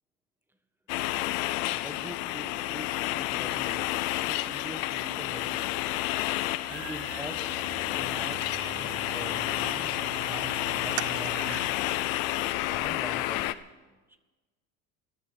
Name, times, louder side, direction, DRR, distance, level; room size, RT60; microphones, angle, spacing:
sound 1, 0.9-13.5, left 16 dB, 85° left, 0.7 m, -30 dB
voice 1, 1.7-5.8 6.7-7.4 7.9-9.9 10.3-11.6 12.7-13.6, right 1 dB, 5° right, 7 dB, 1.5 m, -44 dB
sound 2, 6.7-11.7, right 15 dB, 40° right, 0.4 m, -41 dB
29.0 x 14.0 x 3.4 m, 1.3 s
supercardioid pair, 105°, 40 cm